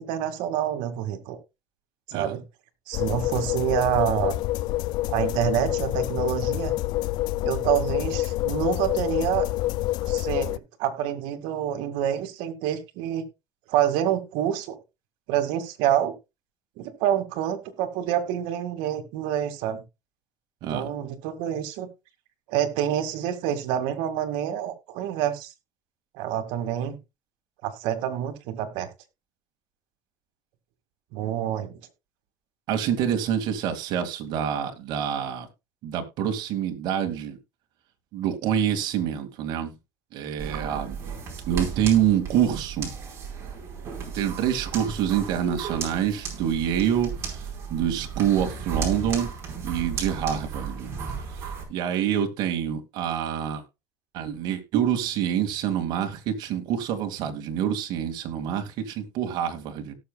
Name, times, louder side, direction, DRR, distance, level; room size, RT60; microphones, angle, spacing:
voice 1, 0.0-1.4 2.1-2.4 2.9-4.3 5.1-6.7 7.4-9.4 10.1-13.2 13.7-14.8 15.3-16.1 16.8-19.8 20.7-21.9 22.5-25.5 26.1-27.0 27.6-28.9 31.1-31.8, right 10 dB, 75° right, 2.1 m, -27 dB
sound 1, 2.9-10.6, left 17 dB, 55° left, 0.4 m, -27 dB
voice 2, 32.7-35.5 35.8-37.4 38.1-39.7 40.1-41.0 41.5-42.9 44.1-49.3 49.6-50.9 51.7-53.6 54.1-59.9, right 9 dB, 60° right, 2.3 m, -26 dB
sound 2, 40.4-51.6, right 6 dB, 30° right, 4.5 m, -34 dB
17.5 x 6.9 x 2.3 m
cardioid pair, 145°, 8 cm